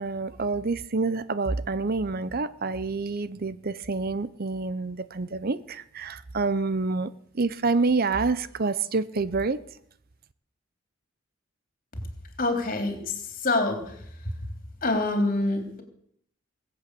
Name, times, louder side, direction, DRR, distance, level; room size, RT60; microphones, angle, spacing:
voice 1, 0.0-9.6, right 3 dB, 45° right, 15 dB, 0.7 m, -27 dB
voice 2, 12.4-14.3 14.8-15.8, left 2 dB, 40° left, 5 dB, 3.5 m, -26 dB
21.0 x 8.0 x 8.4 m, 0.66 s
head